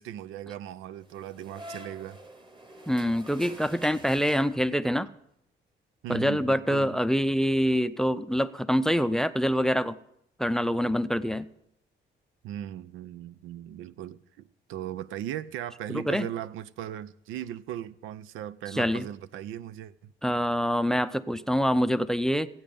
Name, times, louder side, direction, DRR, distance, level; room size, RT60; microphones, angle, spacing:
voice 1, 0.0-2.2 6.0-7.0 12.4-20.1, right 11 dB, 90° right, 0.5 m, -38 dB
sound 1, 1.0-4.9, right 1 dB, 25° right, 1.4 m, -47 dB
voice 2, 2.9-5.1 6.1-10.0 10.4-11.5 15.9-16.3 18.7-19.0 20.2-22.5, equal, 5° left, 0.5 m, -25 dB
15.5 x 8.7 x 5.2 m
cardioid pair, 90°, 20 cm